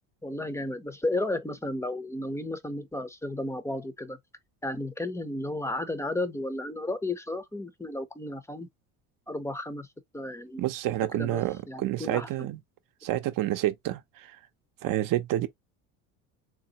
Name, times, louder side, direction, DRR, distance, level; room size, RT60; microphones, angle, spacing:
voice 1, 0.2-4.2 4.6-8.7 9.3-9.9 10.1-10.6 11.1-11.4 11.7-12.3, left 2 dB, 5° left, 0.6 m, -33 dB
voice 2, 10.6-12.6 13.0-14.4 14.8-15.5, right 14 dB, 50° right, 0.7 m, -29 dB
3.9 x 2.3 x 2.8 m
supercardioid pair, 90°, 41 cm